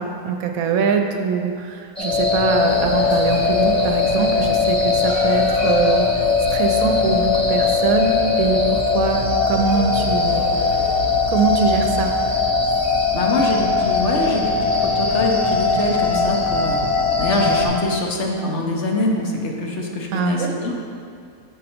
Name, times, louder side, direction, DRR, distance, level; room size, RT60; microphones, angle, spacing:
voice 1, 0.0-10.4 11.3-12.1 20.1-20.5, right 5 dB, 75° right, 4 dB, 1.0 m, -23 dB
sound 1, 2.0-17.7, left 5 dB, 5° left, 0.8 m, -20 dB
sound 2, 2.1-17.8, right 1 dB, 50° right, 0.6 m, -32 dB
sound 3, 2.5-12.5, left 1 dB, 85° left, 2.5 m, -35 dB
voice 2, 12.8-20.9, left 2 dB, 55° left, 0 dB, 1.0 m, -24 dB
7.7 x 5.2 x 4.4 m, 2.4 s
omnidirectional pair, 1.5 m